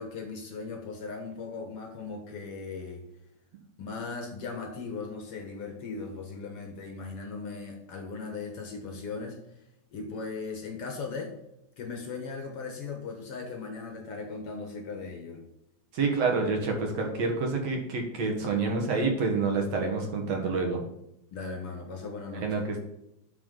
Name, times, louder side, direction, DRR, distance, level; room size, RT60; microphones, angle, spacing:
voice 1, 0.0-3.1 3.8-9.4 9.9-11.3 11.8-15.4 21.3-22.6, left 4 dB, 60° left, 3 dB, 1.9 m, -38 dB
voice 2, 15.9-20.8 22.4-22.8, right 4 dB, 65° right, 2 dB, 2.5 m, -28 dB
11.5 x 5.8 x 3.9 m, 0.83 s
omnidirectional pair, 3.4 m